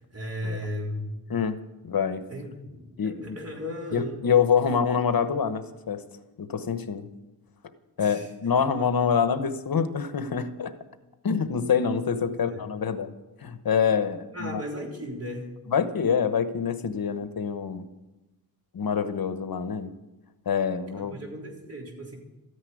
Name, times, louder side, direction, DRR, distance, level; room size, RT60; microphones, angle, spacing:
voice 1, 0.1-1.1 2.3-4.2 8.0-8.3 12.2-12.7 14.3-15.5 20.9-22.2, left 1 dB, 40° right, -1 dB, 4.0 m, -36 dB
voice 2, 1.8-2.2 3.0-3.4 3.9-6.0 6.4-7.1 8.0-10.7 11.2-13.1 13.4-14.6 15.7-17.8 18.7-19.9 20.5-21.2, left 6 dB, 70° left, 10 dB, 1.1 m, -26 dB
14.0 x 9.8 x 9.4 m, 1.0 s
wide cardioid pair, 115°, 37 cm